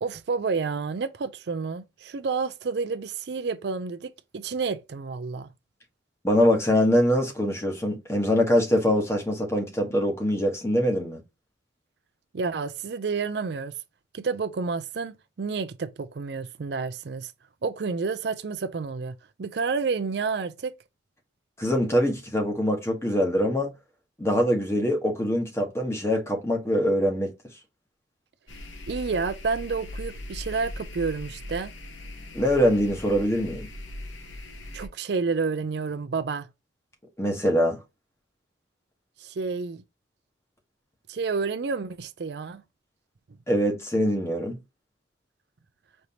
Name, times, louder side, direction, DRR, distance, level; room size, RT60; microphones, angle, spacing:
voice 1, 0.0-5.5 12.3-13.7 14.1-17.3 17.6-20.7 28.9-31.7 34.7-36.5 39.2-39.8 41.1-42.6, right 4 dB, 60° right, 0.4 m, -30 dB
voice 2, 6.2-11.2 21.6-23.7 24.2-27.3 32.3-33.7 37.2-37.8 43.5-44.6, equal, 15° left, 1.2 m, -23 dB
sound 1, 28.5-34.9, left 1 dB, 85° left, 1.2 m, -39 dB
5.2 x 3.3 x 2.8 m
head